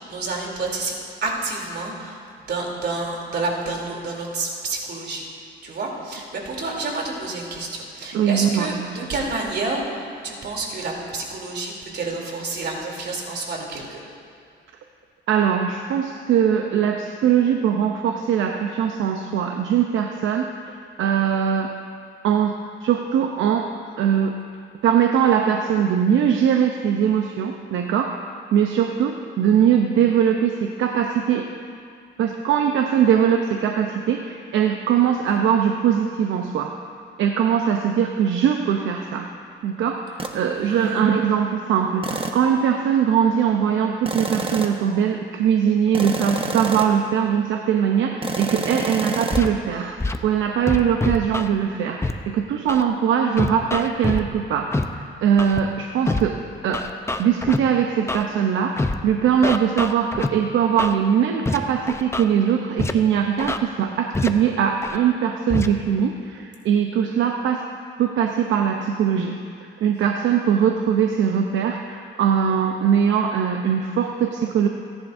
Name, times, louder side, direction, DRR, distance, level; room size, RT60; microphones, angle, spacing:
voice 1, 0.1-2.2 2.5-5.3 5.6-14.0 40.6-41.0, right 3 dB, 60° right, -1 dB, 3.3 m, -29 dB
voice 2, 8.1-9.0 15.3-20.5 21.0-21.7 22.2-22.6 22.8-23.7 24.0-24.4 24.8-28.1 28.5-31.5 32.2-36.7 37.2-39.3 39.6-50.0 50.2-52.0 52.3-56.4 56.6-56.9 57.2-67.6 68.0-74.7, right 8 dB, 80° right, 4 dB, 0.8 m, -21 dB
sound 1, 40.2-40.4 42.0-42.5 44.1-44.9 45.9-47.1 48.2-49.4, right 3 dB, 25° right, 1.1 m, -28 dB
Scratching (performance technique), 49.3-49.5 50.0-50.2 50.7-51.5 52.0-52.1 52.7-52.8 53.4-54.2 54.7-54.8 55.4-55.6 56.1-56.2 56.7-57.6 58.1-58.2 58.8-59.0 59.4-60.3 60.8-60.9 61.5-61.6 61.9-62.2 62.8-62.9 63.4-63.6 64.1-64.3 64.8-65.0 65.5-65.7, left 2 dB, 15° left, 0.7 m, -24 dB
28.0 x 10.5 x 2.7 m, 2.4 s
cardioid pair, 90°, 20 cm